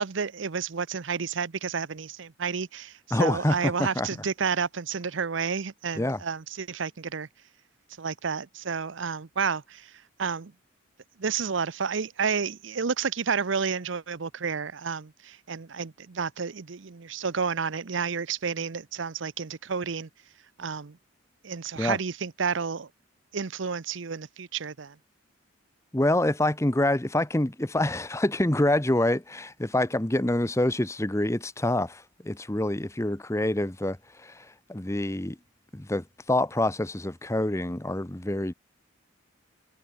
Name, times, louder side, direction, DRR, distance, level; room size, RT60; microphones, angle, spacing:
voice 1, 0.0-7.3 8.0-9.9 10.2-10.5 11.2-20.1 20.6-21.0 21.4-22.9 23.3-24.9, right 5 dB, 70° right, 0.7 m, -30 dB
voice 2, 3.1-4.1 6.0-6.2 21.8-22.0 25.9-35.4 35.7-38.5, left 1 dB, 15° left, 0.8 m, -26 dB
head